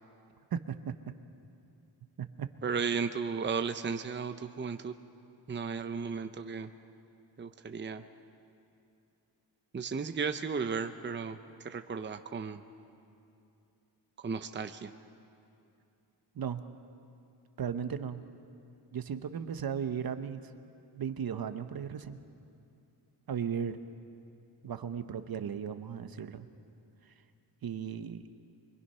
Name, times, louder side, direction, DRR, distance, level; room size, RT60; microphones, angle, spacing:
voice 1, 0.5-1.0 2.2-2.5 16.3-16.6 17.6-18.2 18.9-20.4 20.9-22.2 23.3-23.8 24.6-26.5 27.6-28.2, right 7 dB, 60° right, 10 dB, 1.0 m, -36 dB
voice 2, 2.6-4.9 5.5-6.7 7.4-8.0 9.7-12.6 14.2-14.9, right 5 dB, 25° right, 8 dB, 0.8 m, -35 dB
24.5 x 23.0 x 5.6 m, 2.6 s
cardioid pair, 95°, 42 cm